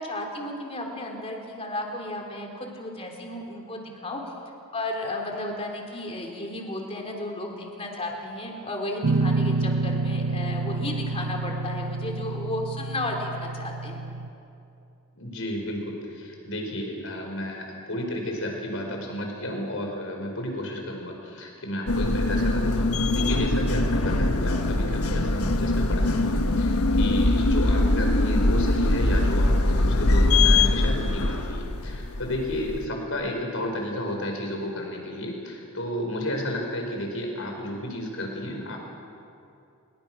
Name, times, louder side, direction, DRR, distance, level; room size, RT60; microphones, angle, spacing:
voice 1, 0.0-4.2 4.7-14.0, left 1 dB, 25° left, 1 dB, 3.5 m, -33 dB
Guitar, 9.0-14.3, right 3 dB, 60° right, 0.7 m, -28 dB
voice 2, 15.1-38.8, left 1 dB, 65° left, 1 dB, 5.2 m, -32 dB
sound 1, 21.9-32.9, left 2 dB, 85° left, 1.3 m, -22 dB
28.5 x 22.0 x 6.3 m, 2.7 s
head